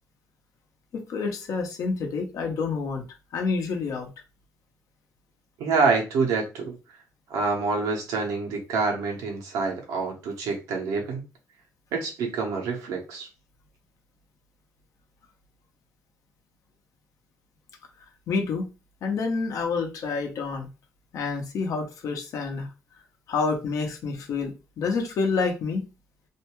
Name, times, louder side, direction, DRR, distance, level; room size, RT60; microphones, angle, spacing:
voice 1, 0.9-3.0 3.3-4.1 18.3-18.7 19.0-20.7 21.1-22.7 23.3-25.8, left 4 dB, 75° left, 0.7 m, -28 dB
voice 2, 5.6-6.8 7.3-11.2 11.9-13.3, right 4 dB, 90° right, 0.9 m, -26 dB
2.6 x 2.2 x 3.0 m
cardioid pair, 80°, 6 cm